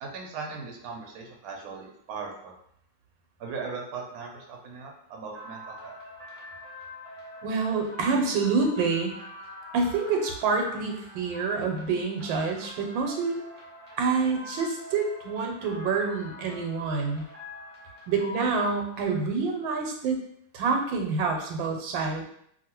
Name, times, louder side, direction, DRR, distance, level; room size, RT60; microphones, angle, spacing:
voice 1, 0.0-2.5 3.4-6.0, right 4 dB, 65° right, 0 dB, 0.9 m, -38 dB
sound 1, 5.3-19.0, left 2 dB, 45° right, 0.7 m, -45 dB
voice 2, 7.4-9.1 9.7-13.4 14.0-17.2 18.1-20.2 20.5-22.2, right 4 dB, 90° right, 2 dB, 1.4 m, -27 dB
2.7 x 2.6 x 2.9 m, 0.69 s
omnidirectional pair, 2.0 m